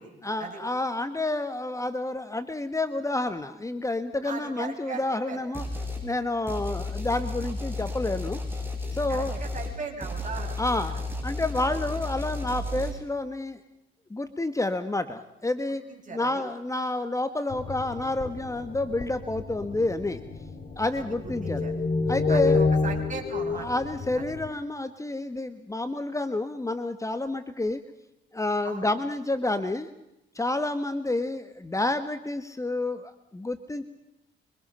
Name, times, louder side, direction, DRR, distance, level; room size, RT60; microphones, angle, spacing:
voice 1, 0.2-5.6 6.0-8.6 8.9-9.4 10.6-11.0 11.2-13.6 14.1-15.8 16.1-20.2 20.8-21.6 22.1-22.6 23.5-27.8 28.3-29.9 30.3-33.9, left 2 dB, 15° left, 10 dB, 1.6 m, -29 dB
voice 2, 4.2-5.4 9.1-10.6 15.7-16.4 20.9-21.1 21.4-21.7 22.3-23.7 24.1-24.2 28.6-28.9, right 4 dB, 40° right, 2 dB, 7.9 m, -38 dB
sound 1, 5.5-6.1 6.5-12.9, left 2 dB, 10° right, 7.4 m, -33 dB
sound 2, 17.5-24.5, left 4 dB, 45° left, 3.3 m, -29 dB
26.0 x 25.0 x 5.7 m, 0.89 s
cardioid pair, 90°, 20 cm